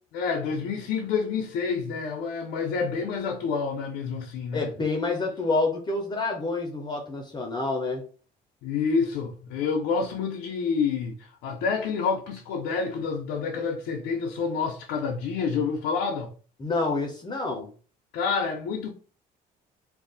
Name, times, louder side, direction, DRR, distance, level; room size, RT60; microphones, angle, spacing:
voice 1, 0.1-4.7 8.6-16.3 18.1-18.9, left 5 dB, 85° left, 0.5 m, -28 dB
voice 2, 4.5-8.0 16.6-17.7, left 3 dB, 25° left, 0.6 m, -28 dB
2.4 x 2.0 x 3.8 m
cardioid pair, 110°, 17 cm